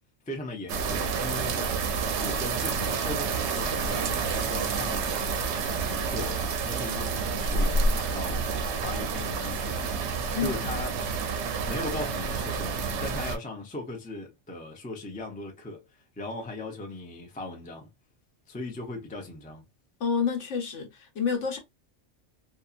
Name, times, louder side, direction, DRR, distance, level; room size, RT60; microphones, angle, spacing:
voice 1, 0.3-1.8 2.2-5.2 5.6-8.5 8.8-10.0 10.4-11.0 11.7-17.9 18.5-19.6, left 2 dB, 15° left, 0.3 m, -38 dB
sound 1, 0.7-13.4, right 4 dB, 70° right, 0.8 m, -29 dB
voice 2, 10.3-10.8 20.0-21.6, left 6 dB, 70° left, 1.1 m, -29 dB
2.7 x 2.3 x 2.3 m
omnidirectional pair, 1.3 m